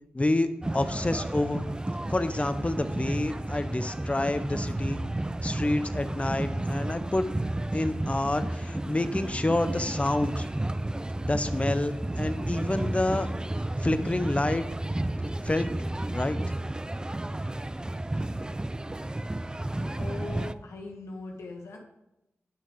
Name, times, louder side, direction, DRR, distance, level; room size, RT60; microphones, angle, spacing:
voice 1, 0.1-0.5 0.7-1.6 2.1-5.0 5.4-7.3 7.7-10.4 11.2-13.3 13.8-14.6 15.4-16.4, left 2 dB, 25° left, 11 dB, 0.8 m, -28 dB
sound 1, 0.6-20.5, right 1 dB, 15° right, 0.4 m, -32 dB
voice 2, 19.8-21.8, left 3 dB, 85° left, 1 dB, 1.3 m, -40 dB
8.9 x 6.2 x 5.2 m, 0.89 s
cardioid pair, 45°, 5 cm